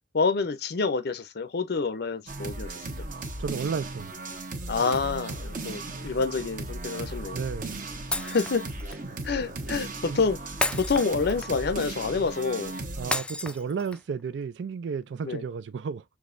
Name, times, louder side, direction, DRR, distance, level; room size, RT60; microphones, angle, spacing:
voice 1, 0.0-2.9 4.7-7.4 8.2-8.6 9.2-10.4 10.7-12.7 15.2-15.4, left 4 dB, 60° left, 0.5 m, -27 dB
sound 1, 2.3-13.2, right 2 dB, 45° right, 1.0 m, -36 dB
voice 2, 3.4-4.1 7.3-7.8 10.1-10.2 13.0-16.0, right 5 dB, 65° right, 0.4 m, -32 dB
Shatter, 8.1-9.0 10.6-11.7 13.1-14.1, left 2 dB, 5° left, 0.3 m, -32 dB
6.2 x 3.0 x 2.5 m
head